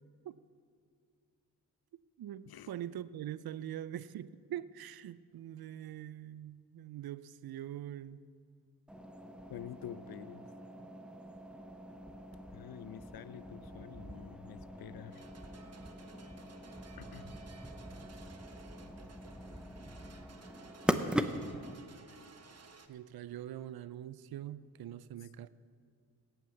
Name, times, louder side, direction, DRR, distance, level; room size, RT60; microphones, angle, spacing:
voice 1, 2.2-8.2 22.9-25.5, right 11 dB, 65° right, 17 dB, 0.6 m, -43 dB
sound 1, 8.9-21.7, equal, ahead, 0.8 m, -41 dB
voice 2, 9.5-10.4 12.5-15.2 17.0-17.2 18.0-18.2, left 10 dB, 65° left, 16 dB, 0.6 m, -48 dB
sound 2, 15.1-22.9, right 4 dB, 40° right, 1.1 m, -57 dB
17.5 x 6.1 x 7.1 m, 2.3 s
cardioid pair, 50°, 39 cm